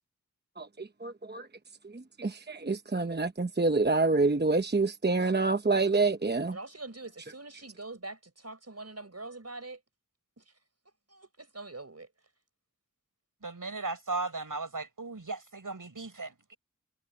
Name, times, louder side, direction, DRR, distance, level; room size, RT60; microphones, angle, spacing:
voice 1, 0.6-1.5 1.8-6.6, right 3 dB, 30° right, 0.9 m, -27 dB
voice 2, 6.5-9.8 10.4-10.5 11.1-12.1, right 2 dB, 50° right, 5.4 m, -44 dB
voice 3, 13.4-16.6, right 3 dB, 80° right, 6.8 m, -36 dB
wide cardioid pair, 40°, 32 cm